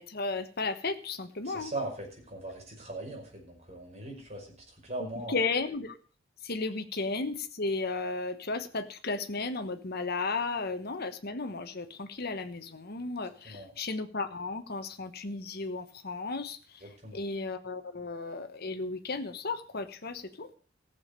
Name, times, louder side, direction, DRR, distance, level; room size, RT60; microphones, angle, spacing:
voice 1, 0.0-1.7 5.0-6.0 6.4-20.5, left 3 dB, 50° left, 8 dB, 1.2 m, -34 dB
voice 2, 1.4-5.4 13.4-13.7 16.8-17.3, right 2 dB, 35° right, 0 dB, 5.4 m, -40 dB
15.5 x 7.1 x 6.8 m, 0.41 s
head